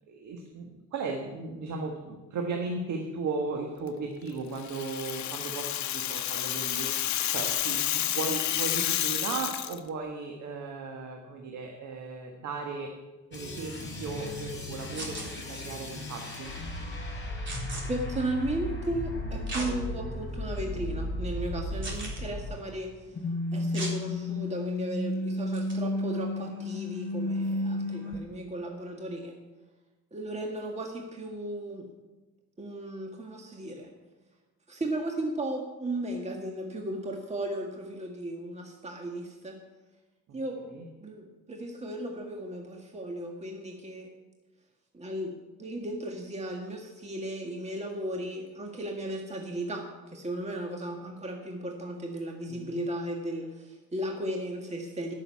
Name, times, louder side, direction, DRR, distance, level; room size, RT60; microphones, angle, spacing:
voice 1, 0.1-6.9 7.3-12.9 13.3-16.5 40.7-40.9 52.5-52.8, right 4 dB, 75° right, 2 dB, 1.6 m, -36 dB
Rattle (instrument), 4.6-9.8, left 12 dB, 65° left, 0.8 m, -30 dB
sound 1, 13.3-22.9 23.1-28.2, left 1 dB, 35° left, 5.1 m, -34 dB
sound 2, 14.9-15.3 17.5-17.8 19.5-19.7 20.3-20.4 21.8-22.2 23.7-24.0 25.5-25.7, right 2 dB, 40° right, 3.8 m, -36 dB
voice 2, 17.9-23.2 23.5-29.4 30.1-31.9 32.6-33.9 34.7-39.6 40.3-40.7 41.0-44.1 44.9-55.1, right 1 dB, 20° right, 2 dB, 1.7 m, -35 dB
11.5 x 6.6 x 8.6 m, 1.2 s
cardioid pair, 90°, 30 cm